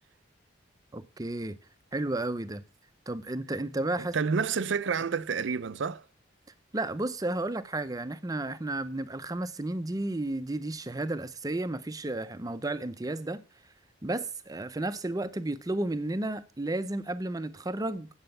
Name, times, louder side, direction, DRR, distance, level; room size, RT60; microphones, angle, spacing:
voice 1, 0.9-1.6 1.9-2.6 3.1-4.2 6.7-13.4 14.0-18.1, right 2 dB, 20° right, 0.6 m, -32 dB
voice 2, 4.0-6.0, right 5 dB, 65° right, 0.5 m, -29 dB
8.0 x 7.8 x 6.5 m
head